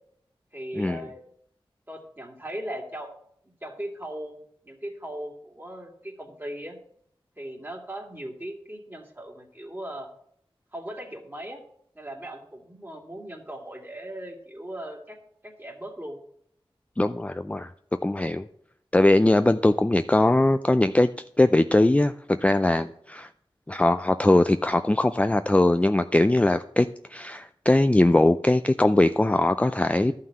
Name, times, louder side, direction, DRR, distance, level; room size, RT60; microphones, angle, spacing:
voice 1, 0.5-1.2 1.9-3.1 3.6-4.4 4.6-6.8 7.4-10.1 10.7-11.6 11.9-15.2 15.4-16.2, right 1 dB, 20° right, 1 dB, 2.4 m, -38 dB
voice 2, 17.0-17.7 18.0-18.5 18.9-21.1 21.4-23.3 23.7-30.1, left 1 dB, 15° left, 10 dB, 0.4 m, -21 dB
12.0 x 5.7 x 7.6 m, 0.67 s
wide cardioid pair, 55°, 10 cm